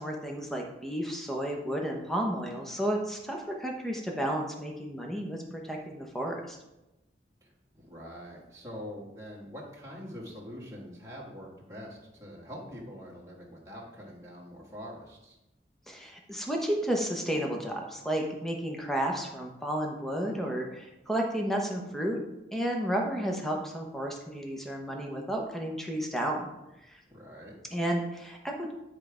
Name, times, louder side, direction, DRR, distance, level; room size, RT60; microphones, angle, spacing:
voice 1, 0.0-6.6 15.9-22.2 22.5-26.5 26.9-27.0 27.7-28.7, right 1 dB, ahead, 0 dB, 1.0 m, -32 dB
voice 2, 7.4-15.4 27.1-27.5, equal, 15° right, -5 dB, 1.7 m, -44 dB
10.5 x 3.5 x 5.0 m, 0.96 s
head